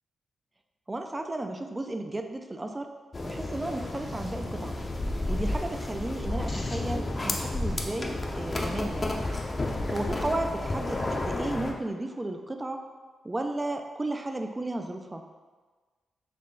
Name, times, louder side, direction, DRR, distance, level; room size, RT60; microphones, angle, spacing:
voice 1, 0.9-2.9 3.2-4.8 5.3-9.2 9.9-12.8 13.2-15.2, right 2 dB, 25° right, 5 dB, 0.4 m, -33 dB
sound 1, 3.1-11.7, left 2 dB, 35° left, 0.6 m, -31 dB
4.2 x 3.1 x 3.2 m, 1.4 s
cardioid pair, 60°, 0 cm